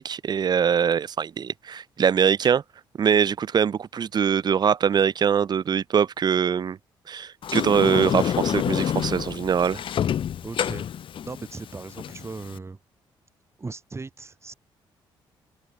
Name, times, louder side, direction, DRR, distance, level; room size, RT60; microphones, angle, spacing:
voice 1, 0.0-2.6 3.0-6.8 7.1-9.8, right 7 dB, 45° right, 0.6 m, -23 dB
Sliding door, 7.4-12.6, left 9 dB, 60° left, 1.0 m, -28 dB
voice 2, 10.4-10.9 11.2-12.8 13.6-14.5, right 3 dB, 30° right, 3.0 m, -38 dB
open air
supercardioid pair, 70°, 10 cm